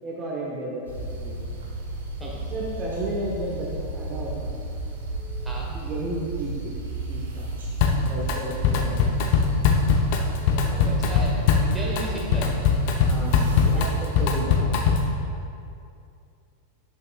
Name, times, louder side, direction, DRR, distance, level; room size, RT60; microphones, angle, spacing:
voice 1, 0.0-1.4 2.2-4.6 5.7-6.7 7.1-7.5 7.9-9.1 12.4-12.5 13.0-14.9, right 1 dB, 25° right, -4 dB, 1.1 m, -33 dB
sound 1, 0.8-14.3, right 2 dB, 65° right, 1.9 m, -33 dB
Drum kit, 7.8-8.4 8.6-15.2, left 5 dB, 45° left, 0.8 m, -21 dB
voice 2, 10.5-12.5 13.7-13.8, right 1 dB, 5° right, -4 dB, 1.7 m, -35 dB
11.0 x 7.7 x 2.4 m, 2.5 s
figure-of-eight pair, 90°, 0 cm